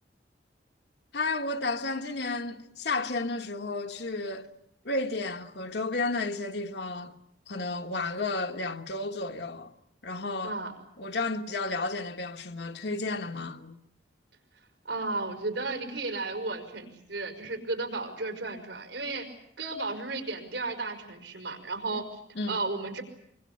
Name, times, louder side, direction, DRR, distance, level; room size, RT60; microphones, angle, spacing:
voice 1, 1.1-4.5 4.8-7.2 7.5-9.7 10.0-10.6 11.0-13.8 22.4-22.6, left 3 dB, 70° left, 1.5 m, -32 dB
voice 2, 14.9-19.3 19.6-22.1 22.5-23.0, right 3 dB, 85° right, 5.2 m, -34 dB
25.0 x 24.5 x 8.7 m
head